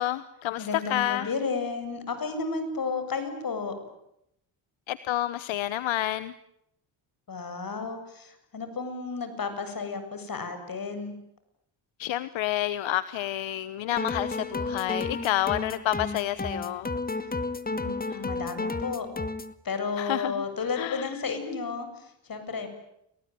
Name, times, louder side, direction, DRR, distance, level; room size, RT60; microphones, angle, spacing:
voice 1, 0.0-1.3 4.9-6.3 12.0-17.0 20.0-20.4 20.8-21.1, left 14 dB, 75° left, 15 dB, 1.2 m, -29 dB
voice 2, 0.6-3.8 7.3-11.1 17.7-19.1 19.6-22.7, left 4 dB, 45° left, 8 dB, 7.8 m, -33 dB
sound 1, 13.9-19.5, left 3 dB, 20° left, 2.0 m, -32 dB
29.5 x 20.0 x 9.4 m, 0.78 s
cardioid pair, 80°, 48 cm